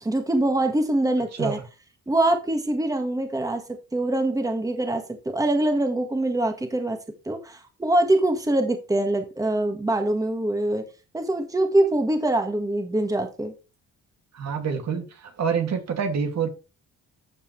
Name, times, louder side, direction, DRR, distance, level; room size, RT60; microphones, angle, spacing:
voice 1, 0.0-1.6 2.1-3.6 3.9-7.0 7.2-10.8 11.1-13.5, right 1 dB, 10° right, 1.7 m, -24 dB
voice 2, 14.3-16.5, right 6 dB, 60° right, 2.5 m, -27 dB
13.0 x 5.5 x 3.3 m
cardioid pair, 90°, 30 cm